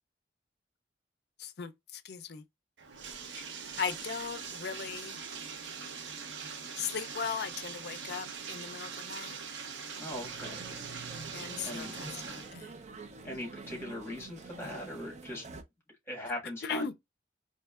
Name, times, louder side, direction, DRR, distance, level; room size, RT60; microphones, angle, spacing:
voice 1, 1.4-2.4 3.3-3.5 3.8-5.2 6.8-9.4 11.3-12.7 16.6-16.9, left 6 dB, 60° left, 0.4 m, -38 dB
Bathtub (filling or washing), 2.8-12.5, right 6 dB, 80° right, 0.6 m, -42 dB
voice 2, 10.0-10.6 11.6-12.0 13.2-15.4 16.1-16.9, left 1 dB, 15° left, 1.5 m, -40 dB
sound 1, 10.1-15.6, right 3 dB, 40° right, 0.5 m, -47 dB
4.4 x 2.6 x 2.3 m
head